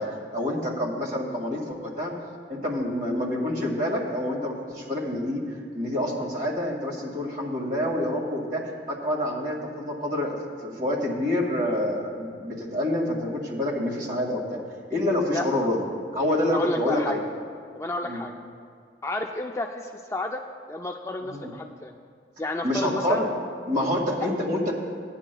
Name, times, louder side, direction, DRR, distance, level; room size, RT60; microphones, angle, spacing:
voice 1, 0.0-2.1 2.5-5.4 5.7-14.6 14.9-15.8 16.1-17.2 18.0-18.2 21.3-21.5 22.6-23.3 23.7-24.7, left 1 dB, 50° right, -2 dB, 2.0 m, -27 dB
voice 2, 16.5-17.2 17.7-18.3 19.0-20.4 20.7-21.9 22.4-23.2, left 2 dB, 15° left, 3 dB, 0.3 m, -31 dB
17.0 x 9.8 x 2.3 m, 2.1 s
head